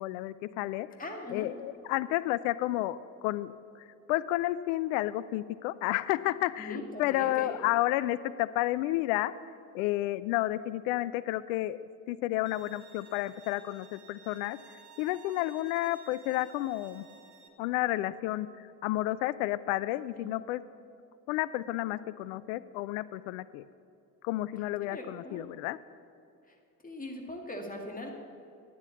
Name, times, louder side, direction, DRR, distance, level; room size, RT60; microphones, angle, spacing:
voice 1, 0.0-0.9 1.3-3.0 3.2-9.3 9.7-14.6 15.0-17.1 17.6-20.6 21.3-23.7 24.2-25.8, left 16 dB, 60° left, 17 dB, 0.5 m, -31 dB
voice 2, 1.0-1.5 6.6-7.6 20.1-20.3 24.8-25.5 26.5-26.6 26.8-28.1, left 1 dB, 20° left, 2 dB, 2.0 m, -40 dB
Bowed string instrument, 12.5-17.5, right 6 dB, 75° right, 0.9 m, -56 dB
10.0 x 8.8 x 7.1 m, 2.6 s
figure-of-eight pair, 55°, 44 cm